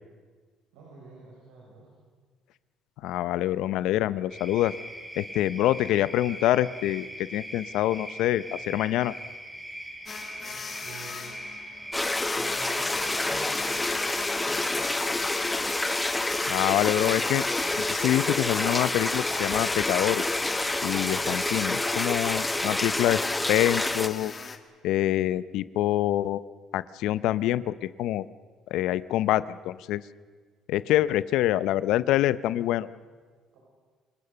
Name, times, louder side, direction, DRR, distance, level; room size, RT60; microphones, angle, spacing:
voice 1, 0.7-1.9 10.4-11.3 12.3-15.2 33.5-33.6, right 3 dB, 90° right, -3 dB, 6.2 m, -47 dB
voice 2, 3.0-4.7 5.2-9.1 16.5-17.4 17.8-20.2 20.8-24.3 24.8-26.4 26.7-28.2 28.7-30.0 30.7-32.9, left 14 dB, 75° left, 17 dB, 0.6 m, -26 dB
sound 1, 4.3-22.9, right 1 dB, 10° right, 5.1 m, -41 dB
sound 2, 10.1-24.6, left 5 dB, 35° left, 2.0 m, -39 dB
sound 3, 11.9-24.1, left 2 dB, 15° left, 1.1 m, -28 dB
29.0 x 19.0 x 6.8 m, 1.5 s
supercardioid pair, 85°, 0 cm